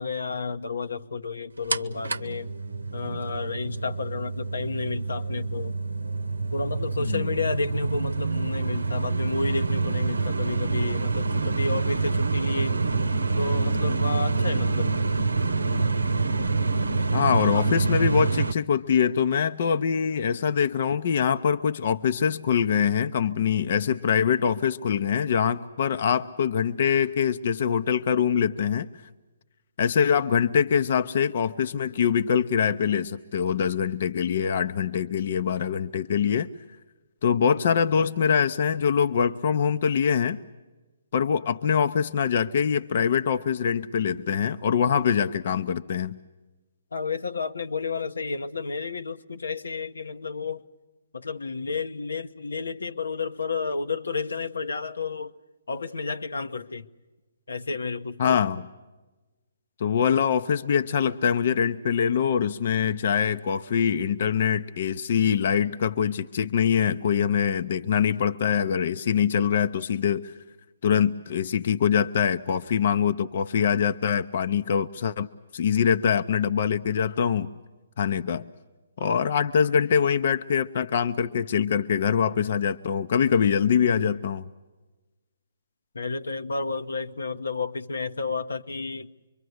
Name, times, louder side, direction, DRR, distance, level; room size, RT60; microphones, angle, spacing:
voice 1, 0.0-2.5 2.9-5.7 6.5-12.8 13.4-15.0 17.5-17.7 46.9-50.7 51.1-55.3 55.7-56.9 57.5-58.4 85.9-89.1, left 4 dB, 85° left, 1.0 m, -31 dB
sound 1, 1.7-18.5, right 3 dB, 90° right, 0.8 m, -26 dB
voice 2, 17.1-28.9 29.8-36.5 37.2-40.4 41.1-46.2 58.2-58.7 59.8-70.3 70.8-75.3 75.5-77.5 78.0-78.4 79.0-84.5, left 7 dB, 55° left, 0.7 m, -24 dB
25.5 x 23.5 x 8.0 m
hypercardioid pair, 145°, 0 cm